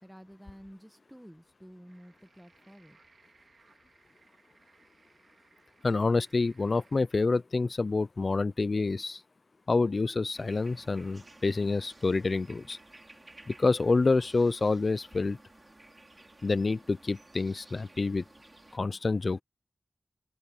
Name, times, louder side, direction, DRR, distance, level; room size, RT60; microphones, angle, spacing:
voice 1, 0.0-3.0, equal, 5° right, 1.2 m, -51 dB
sound 1, 1.9-7.0, right 4 dB, 85° right, 2.2 m, -64 dB
voice 2, 5.8-9.2 9.7-12.8 13.5-15.4 16.4-18.2 18.7-19.4, left 3 dB, 60° left, 0.4 m, -27 dB
sound 2, 10.3-18.8, right 2 dB, 40° right, 5.2 m, -55 dB
open air
wide cardioid pair, 55°, 0 cm